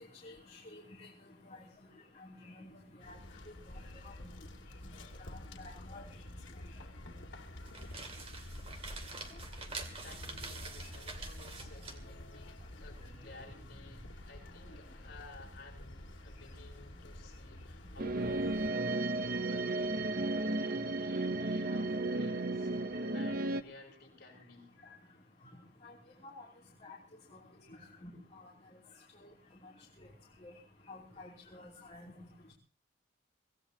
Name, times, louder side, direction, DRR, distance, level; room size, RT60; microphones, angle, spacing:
voice 1, 0.7-1.1 1.5-1.6 2.4-2.7 3.0-3.2 4.0-4.3 5.2-6.1 25.8-25.9 26.2-26.5 26.8-27.0 28.0-28.1 30.4-30.5 30.9-32.1, left 2 dB, 35° left, -4 dB, 3.1 m, -50 dB
sound 1, 3.0-18.7, left 1 dB, 80° left, 2.3 m, -49 dB
sound 2, 7.5-13.2, right 3 dB, 30° right, 2.3 m, -47 dB
voice 2, 9.8-20.1 20.4-22.8 23.1-24.7, left 2 dB, 55° left, 0 dB, 7.4 m, -55 dB
sound 3, 18.0-23.6, right 2 dB, 50° right, 0.9 m, -33 dB
24.5 x 17.5 x 2.9 m, 0.36 s
head